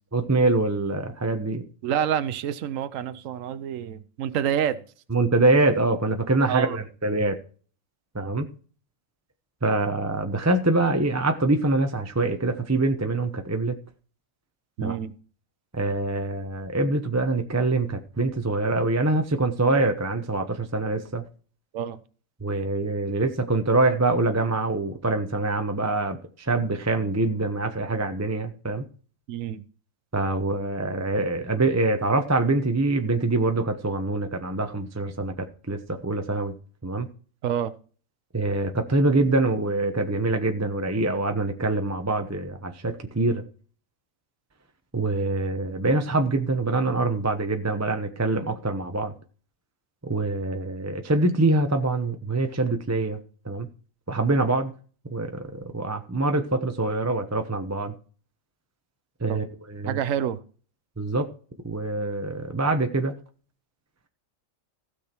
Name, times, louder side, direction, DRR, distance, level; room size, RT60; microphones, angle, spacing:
voice 1, 0.1-1.6 5.1-7.4 8.1-8.5 9.6-13.8 14.8-14.9 15.7-21.2 22.4-28.9 30.1-36.5 36.8-37.1 38.3-43.4 44.9-49.1 50.0-53.2 53.4-53.7 54.1-54.7 55.1-57.9 59.2-60.0 61.0-61.3 61.6-63.1, right 2 dB, 15° right, 0.8 m, -24 dB
voice 2, 1.8-4.8 6.5-6.8 14.8-15.1 21.7-22.0 29.3-29.6 37.4-37.7 59.3-59.4 59.8-60.4, right 9 dB, 75° right, 1.1 m, -27 dB
16.0 x 6.5 x 4.4 m
omnidirectional pair, 1.4 m